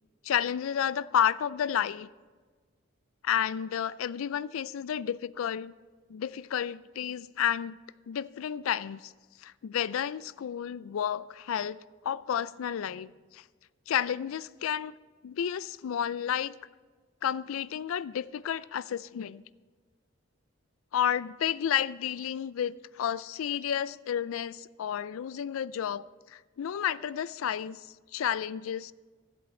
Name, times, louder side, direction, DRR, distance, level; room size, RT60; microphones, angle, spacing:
voice 1, 0.2-2.1 3.2-5.7 6.1-7.8 8.1-9.1 9.4-13.4 13.9-14.9 15.2-16.5 17.2-19.4 20.9-26.0 26.3-27.8 28.1-28.9, left 9 dB, 85° left, 0.4 m, -31 dB
15.0 x 7.9 x 4.3 m
head